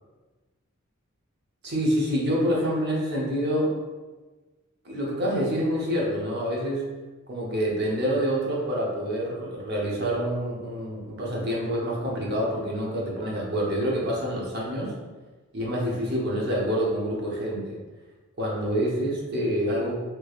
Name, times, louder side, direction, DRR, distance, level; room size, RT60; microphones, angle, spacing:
voice 1, 1.6-3.7 4.8-6.8 7.3-14.9 15.5-17.8 18.4-20.0, equal, 50° right, -4 dB, 0.8 m, -27 dB
3.3 x 3.0 x 2.4 m, 1.3 s
head